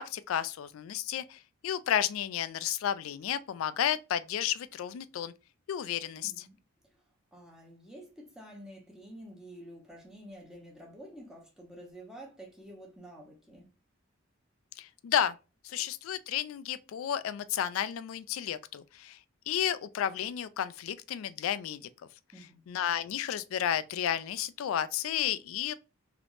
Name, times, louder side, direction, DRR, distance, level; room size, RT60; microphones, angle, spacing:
voice 1, 0.0-5.3 5.7-6.3 14.8-15.4 15.6-19.2 19.5-21.8 22.7-25.7, left 10 dB, 80° left, 0.3 m, -32 dB
voice 2, 6.2-6.6 7.3-13.7 22.3-22.7, equal, 5° right, 0.8 m, -49 dB
3.4 x 2.8 x 2.5 m
head